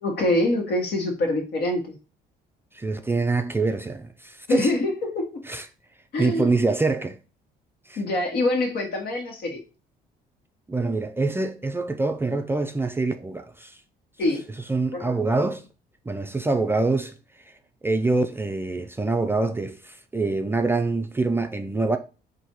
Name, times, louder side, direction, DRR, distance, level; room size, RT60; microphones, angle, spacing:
voice 1, 0.0-2.0 4.5-5.3 6.1-6.5 8.0-9.6 14.2-14.4 14.9-15.2, left 2 dB, 65° left, 1.5 m, -25 dB
voice 2, 2.7-4.7 5.5-5.7 6.2-7.2 7.9-8.0 10.7-13.8 14.6-15.6 16.1-17.1 17.5-17.6 17.8-22.0, right 3 dB, 15° right, 0.4 m, -25 dB
4.1 x 2.7 x 4.5 m
cardioid pair, 110°, 17 cm